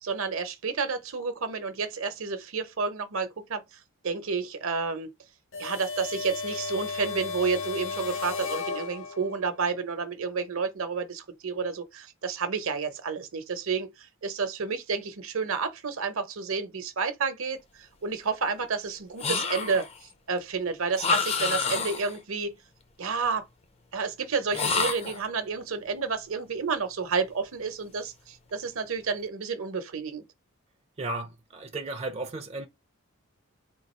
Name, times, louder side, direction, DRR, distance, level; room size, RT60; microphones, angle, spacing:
voice 1, 0.0-5.1 5.6-22.6 23.0-23.5 23.9-30.2, right 5 dB, 70° right, 0.8 m, -30 dB
sound 1, 5.5-9.4, left 5 dB, 65° left, 1.0 m, -34 dB
sound 2, 19.2-20.0 21.0-22.2 24.5-25.3, left 5 dB, 30° left, 0.5 m, -28 dB
voice 2, 31.0-32.7, right 2 dB, 30° right, 0.4 m, -34 dB
3.8 x 2.3 x 4.3 m
head